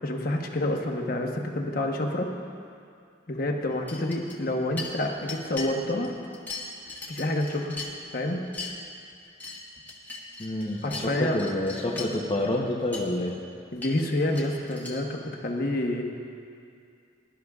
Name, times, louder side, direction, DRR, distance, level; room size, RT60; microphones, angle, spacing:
voice 1, 0.0-2.3 3.3-6.1 7.1-7.8 8.1-8.5 10.8-11.5 13.7-16.0, left 1 dB, 50° left, 2 dB, 1.0 m, -28 dB
sound 1, 3.9-4.5 4.8-5.7 6.0-8.2 8.5-8.7 9.1-11.1 11.4-12.2 12.7-12.8 12.9-13.1 13.7-15.0, left 3 dB, 10° left, 1.2 m, -39 dB
voice 2, 10.4-13.4, left 1 dB, 25° left, -3 dB, 0.8 m, -28 dB
21.5 x 11.5 x 2.4 m, 2.4 s
head